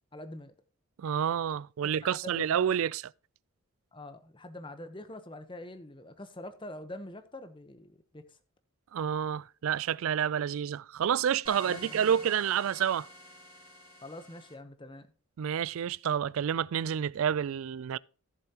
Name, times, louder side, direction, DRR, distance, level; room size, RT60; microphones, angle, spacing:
voice 1, 0.1-0.5 1.8-2.6 3.9-8.2 11.6-12.1 14.0-15.1, left 1 dB, 20° left, 0.9 m, -45 dB
voice 2, 1.0-3.1 8.9-13.1 15.4-18.0, right 8 dB, 70° right, 0.3 m, -29 dB
sound 1, 11.4-14.5, left 1 dB, 20° right, 2.0 m, -49 dB
14.5 x 7.1 x 2.9 m
head